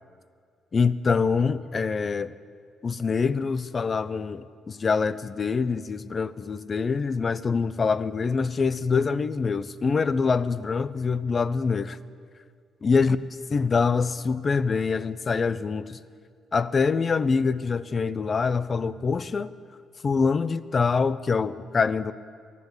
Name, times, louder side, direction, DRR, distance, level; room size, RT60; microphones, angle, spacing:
voice 1, 0.7-2.3 2.8-12.0 12.8-13.2 13.5-16.0 16.5-19.5 20.0-22.1, left 5 dB, 40° left, 16 dB, 0.5 m, -25 dB
13.0 x 11.0 x 8.1 m, 2.1 s
cardioid pair, 90°, 0 cm